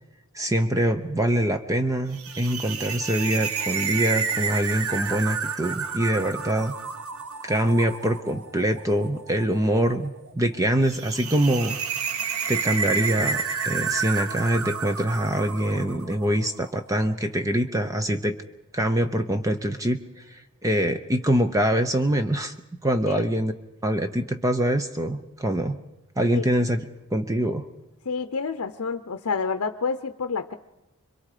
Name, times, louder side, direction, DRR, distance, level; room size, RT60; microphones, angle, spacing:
voice 1, 0.3-6.7 7.4-11.8 12.5-18.4 18.7-22.5 22.8-23.5 23.8-25.8 26.2-26.8 27.1-27.6, right 1 dB, 15° right, 8 dB, 0.7 m, -24 dB
sound 1, 2.1-16.5, right 5 dB, 75° right, 1.1 m, -30 dB
voice 2, 28.1-30.5, left 5 dB, 75° left, 9 dB, 0.7 m, -29 dB
26.0 x 23.0 x 4.9 m, 0.96 s
head